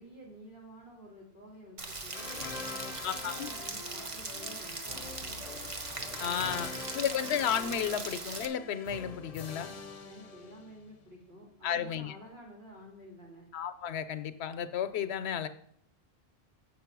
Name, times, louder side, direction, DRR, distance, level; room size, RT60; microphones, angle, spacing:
voice 1, 0.0-2.3 2.7-5.7 6.2-7.2 10.0-13.5, equal, 85° right, -4 dB, 3.4 m, -51 dB
Rain, 1.8-8.5, right 3 dB, 35° right, 0.8 m, -40 dB
sound 1, 2.1-11.0, left 4 dB, 45° left, 0.6 m, -45 dB
voice 2, 3.0-3.5 6.2-9.7 11.6-12.2 13.5-15.5, left 8 dB, 85° left, 12 dB, 0.9 m, -33 dB
7.5 x 5.6 x 5.9 m, 0.69 s
omnidirectional pair, 1.1 m